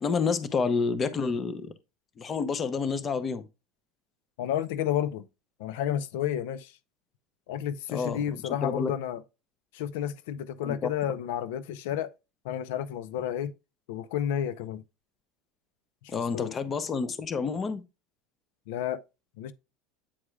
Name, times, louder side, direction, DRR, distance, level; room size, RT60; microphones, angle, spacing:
voice 1, 0.0-1.7 2.2-3.4 7.9-8.9 10.6-10.9 16.1-17.8, left 5 dB, 20° left, 0.6 m, -29 dB
voice 2, 4.4-5.3 5.6-6.7 7.5-9.2 9.7-12.1 12.4-13.5 13.9-14.8 16.0-16.5 18.7-19.0 19.4-19.5, left 10 dB, 75° left, 0.6 m, -31 dB
8.6 x 4.8 x 2.3 m
cardioid pair, 165°, 0 cm